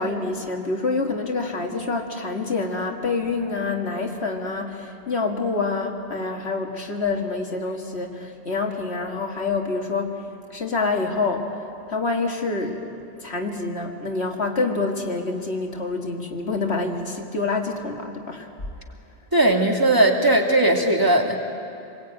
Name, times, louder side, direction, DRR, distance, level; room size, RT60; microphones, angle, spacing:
voice 1, 0.0-11.6 11.9-18.5, left 3 dB, 70° left, 2 dB, 2.3 m, -27 dB
voice 2, 19.3-21.4, right 1 dB, 20° right, 1 dB, 2.4 m, -18 dB
27.0 x 21.0 x 9.3 m, 2.6 s
omnidirectional pair, 1.2 m